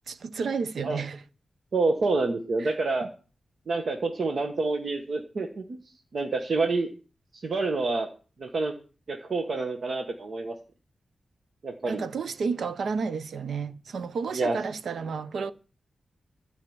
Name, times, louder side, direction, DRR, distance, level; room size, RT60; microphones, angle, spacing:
voice 1, 0.1-1.2 2.6-2.7 3.0-3.1 11.8-15.5, right 5 dB, 80° right, 0.8 m, -31 dB
voice 2, 1.7-3.1 3.7-5.8 6.1-6.9 7.3-8.1 8.4-8.7 9.1-10.5 11.6-12.0 14.3-14.6, right 3 dB, 60° right, 1.4 m, -27 dB
14.0 x 5.0 x 8.7 m
wide cardioid pair, 110°, 0 cm